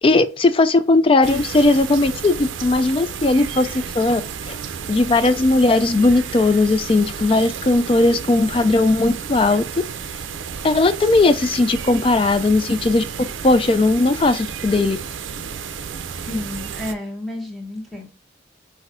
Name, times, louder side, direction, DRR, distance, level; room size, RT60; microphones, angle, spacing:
voice 1, 0.0-4.2 4.5-4.6 4.9-9.6 10.6-13.0 13.4-15.0, left 2 dB, 30° left, 0.3 m, -17 dB
sound 1, 1.2-16.9, right 6 dB, 85° right, 0.4 m, -32 dB
voice 2, 16.3-18.1, left 1 dB, ahead, 1.0 m, -30 dB
5.9 x 2.6 x 2.6 m
head